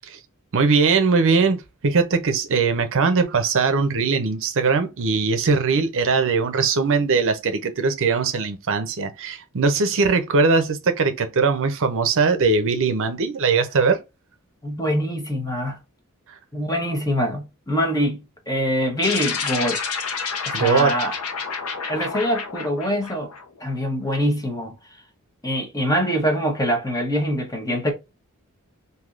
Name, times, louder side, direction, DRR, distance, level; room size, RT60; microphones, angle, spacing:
voice 1, 0.5-14.0 20.5-20.9, right 4 dB, 60° right, 0.6 m, -20 dB
voice 2, 14.6-15.8 16.5-19.8 20.5-21.1 21.9-23.3 23.6-24.7 25.4-27.9, equal, 15° left, 1.0 m, -24 dB
sound 1, 19.0-23.7, left 5 dB, 75° left, 0.8 m, -29 dB
3.4 x 2.7 x 2.4 m
head